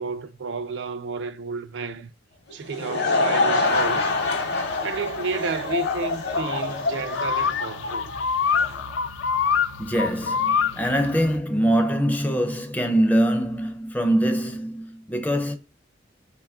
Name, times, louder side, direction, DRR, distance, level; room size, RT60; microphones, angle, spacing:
voice 1, 0.0-2.1 2.5-4.1 4.8-8.1, right 4 dB, 65° right, 0.4 m, -31 dB
Laughter / Crowd, 2.5-8.8, left 3 dB, 55° left, 0.8 m, -26 dB
sound 1, 3.7-11.4, left 6 dB, 75° left, 0.3 m, -27 dB
voice 2, 9.8-15.6, right 1 dB, 10° left, 0.4 m, -23 dB
2.9 x 2.3 x 3.5 m
head